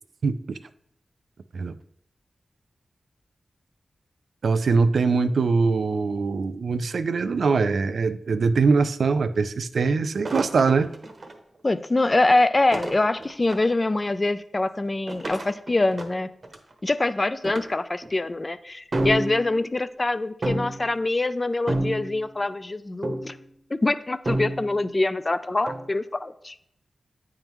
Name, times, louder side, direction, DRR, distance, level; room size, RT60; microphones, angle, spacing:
voice 1, 0.2-0.6 1.5-1.8 4.4-10.9, right 4 dB, 80° right, 11 dB, 0.3 m, -22 dB
sound 1, 10.2-11.4 12.7-13.8 15.1-16.7 17.4-17.6 18.0-18.3 18.9-19.7 20.4-20.9 21.7-22.4 23.0-23.4 24.3-24.9 25.7-25.9, right 1 dB, 45° right, 0.8 m, -29 dB
voice 2, 11.6-16.3 16.8-23.4 23.7-26.6, left 2 dB, 30° left, 13 dB, 0.3 m, -24 dB
8.9 x 3.6 x 3.0 m, 0.72 s
wide cardioid pair, 85°, 0 cm